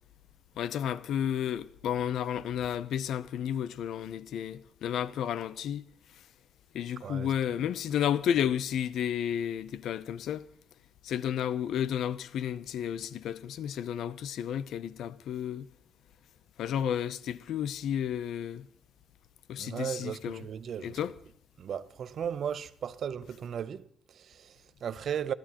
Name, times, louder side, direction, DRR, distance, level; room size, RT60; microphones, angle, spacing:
voice 1, 0.6-5.8 6.7-10.5 11.0-15.7 16.6-18.7 19.5-20.4 20.8-21.1, left 9 dB, 70° left, 0.5 m, -32 dB
voice 2, 7.0-7.6 19.6-21.0 21.6-25.3, right 8 dB, 50° right, 0.6 m, -36 dB
28.5 x 13.0 x 2.9 m
cardioid pair, 155°, 0 cm